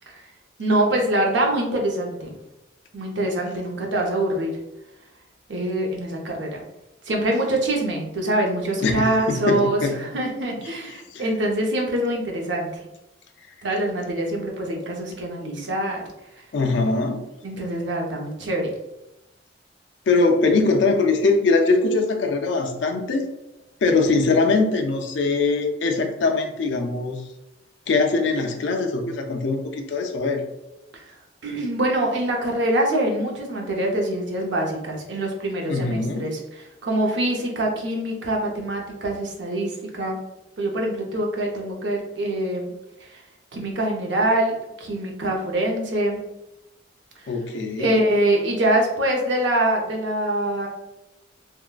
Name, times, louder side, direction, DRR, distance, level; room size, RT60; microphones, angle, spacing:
voice 1, 0.6-2.3 2.9-4.5 5.5-6.6 7.1-12.7 13.6-16.0 17.4-18.7 30.9-31.1 31.4-40.2 40.6-42.7 43.0-43.2 43.5-46.2 47.2-47.3 47.8-50.7, right 1 dB, 75° right, 0 dB, 0.7 m, -24 dB
voice 2, 8.8-10.0 11.1-11.2 16.5-17.2 20.1-23.2 23.8-27.2 27.9-30.4 35.7-36.3 47.3-47.9, left 3 dB, 75° left, 4 dB, 0.4 m, -22 dB
3.5 x 2.2 x 2.3 m, 0.93 s
head